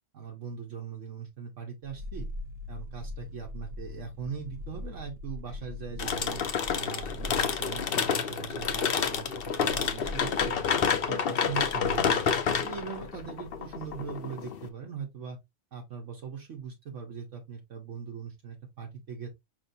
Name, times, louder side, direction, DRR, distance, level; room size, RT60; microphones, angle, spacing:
voice 1, 0.1-2.3 2.7-6.4 6.7-10.6 11.1-12.2 12.5-15.4 15.7-19.3, right 6 dB, 70° right, 1.3 m, -40 dB
sound 1, 1.8-14.2 14.5-14.6, left 2 dB, 55° right, 0.9 m, -43 dB
sound 2, 6.0-14.7, left 7 dB, 55° left, 0.8 m, -29 dB
5.2 x 3.5 x 2.6 m
omnidirectional pair, 1.3 m